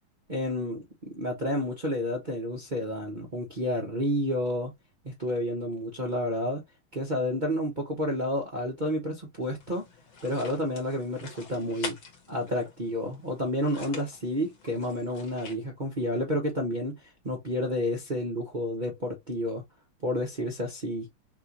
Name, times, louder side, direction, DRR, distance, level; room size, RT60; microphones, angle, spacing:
voice 1, 0.3-4.7 5.0-6.6 6.9-9.8 10.2-12.0 12.3-19.6 20.0-21.1, equal, 30° right, 0.9 m, -30 dB
sound 1, 9.6-15.6, left 5 dB, 70° left, 2.5 m, -45 dB
6.0 x 2.5 x 2.9 m
omnidirectional pair, 2.3 m